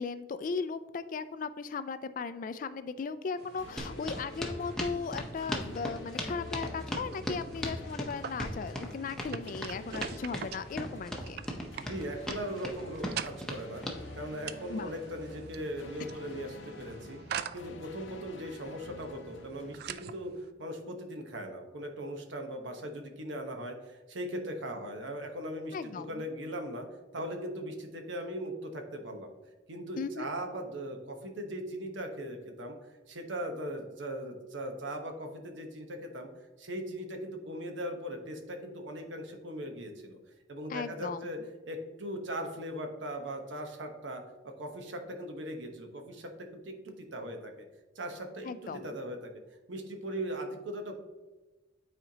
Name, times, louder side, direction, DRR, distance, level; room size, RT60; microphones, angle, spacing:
voice 1, 0.0-11.4 14.7-14.9 16.0-16.1 25.7-26.2 30.0-30.3 40.7-41.2 48.4-48.9, left 5 dB, 45° left, 13 dB, 0.3 m, -37 dB
sound 1, 3.4-20.5, right 8 dB, 55° right, 0.3 m, -46 dB
sound 2, 3.6-20.6, left 3 dB, 85° left, 0.6 m, -49 dB
sound 3, 3.8-14.0, equal, 5° left, 0.7 m, -38 dB
voice 2, 11.8-13.8 14.1-17.2 17.5-26.9 27.1-29.3 29.7-32.8 33.1-36.3 36.6-40.2 40.5-41.4 41.7-47.5 48.0-49.3 49.7-50.9, equal, 80° right, 4 dB, 1.0 m, -39 dB
9.0 x 4.3 x 2.8 m, 1.2 s
head